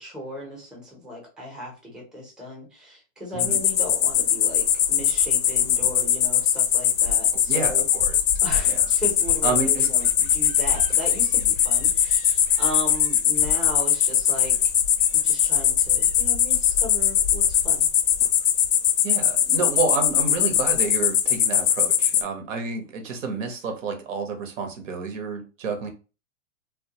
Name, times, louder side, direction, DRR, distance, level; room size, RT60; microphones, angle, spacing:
voice 1, 0.0-7.9 8.4-14.6 15.1-17.9, equal, ahead, -1 dB, 0.6 m, -36 dB
sound 1, 3.4-22.2, left 10 dB, 90° left, 0.5 m, -21 dB
voice 2, 7.5-8.2 8.7-8.9 9.4-9.9 19.0-25.9, right 4 dB, 75° right, 6 dB, 0.9 m, -29 dB
2.2 x 2.1 x 2.8 m, 0.33 s
hypercardioid pair, 135°, 39 cm